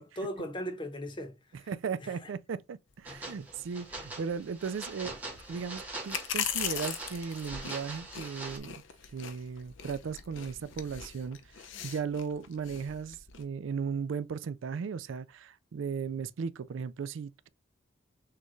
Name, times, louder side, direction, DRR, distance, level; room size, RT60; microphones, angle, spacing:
voice 1, 0.0-1.7 2.0-2.3, equal, 25° left, 0.8 m, -38 dB
voice 2, 1.7-5.1 5.5-8.8 9.1-11.4 11.8-17.5, right 6 dB, 80° right, 0.4 m, -36 dB
sound 1, 2.9-13.4, left 8 dB, 75° left, 0.7 m, -41 dB
sound 2, 3.1-8.6, right 2 dB, 10° right, 1.0 m, -43 dB
6.6 x 2.4 x 3.0 m
head